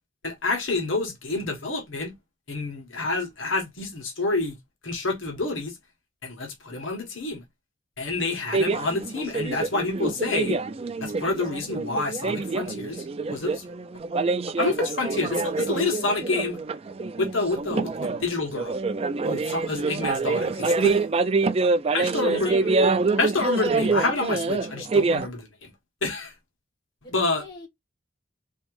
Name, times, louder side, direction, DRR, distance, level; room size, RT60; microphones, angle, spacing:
voice 1, 0.2-2.1 2.5-4.6 4.8-5.8 6.2-7.4 8.0-10.6 11.0-13.0 13.3-13.6 14.6-16.6 17.2-18.8 19.2-21.0 21.9-22.5 23.2-25.7 26.0-26.3 27.1-27.4, left 3 dB, 80° left, 1.5 m, -28 dB
sound 1, 8.5-25.3, right 3 dB, 30° right, 0.3 m, -26 dB
voice 2, 21.6-22.9 27.0-27.7, left 1 dB, 20° left, 1.6 m, -39 dB
3.5 x 3.1 x 3.2 m
head